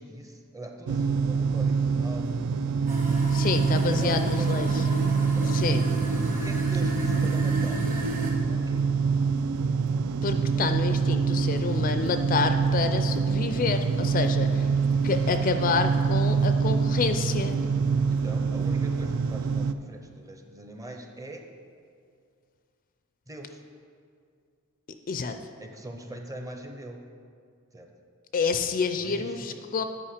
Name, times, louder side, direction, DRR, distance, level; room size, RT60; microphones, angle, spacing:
voice 1, 0.0-2.4 3.7-5.1 5.3-5.6 6.2-7.9 8.5-8.9 18.1-21.5 23.3-23.6 25.6-27.0 27.7-27.9 29.0-29.6, right 1 dB, 15° right, 3 dB, 0.6 m, -42 dB
sound 1, 0.9-19.7, right 5 dB, 70° right, 0.3 m, -25 dB
sound 2, 2.9-8.3, equal, 40° right, 1.2 m, -33 dB
voice 2, 3.3-4.8 5.5-5.8 10.2-14.7 15.0-17.5 25.1-25.4 28.3-29.8, left 5 dB, 40° left, 8 dB, 0.4 m, -28 dB
8.6 x 4.9 x 5.0 m, 2.2 s
head